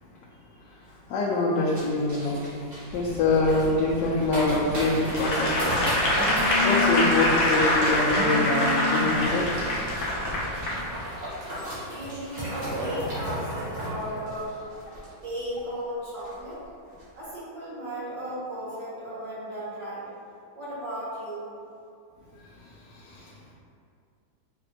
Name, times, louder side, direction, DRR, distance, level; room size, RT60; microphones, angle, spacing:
voice 1, 0.7-2.4 2.9-5.8 6.6-9.5 12.7-12.8 22.6-23.5, left 2 dB, 75° left, -5 dB, 1.1 m, -25 dB
sound 1, 1.8-15.6 15.8-15.9 16.2-16.5 16.9-17.0, equal, 45° right, 1.5 m, -36 dB
Telephone, 2.9-10.9, left 3 dB, 20° left, 0.5 m, -33 dB
Applause / Crowd, 5.1-10.8 11.3-11.5, left 1 dB, 60° left, 0.7 m, -25 dB
voice 2, 11.8-14.5 15.2-16.6 17.1-20.0 20.5-21.5, equal, 75° right, -10 dB, 1.9 m, -35 dB
5.1 x 2.4 x 2.9 m, 2.4 s
omnidirectional pair, 1.9 m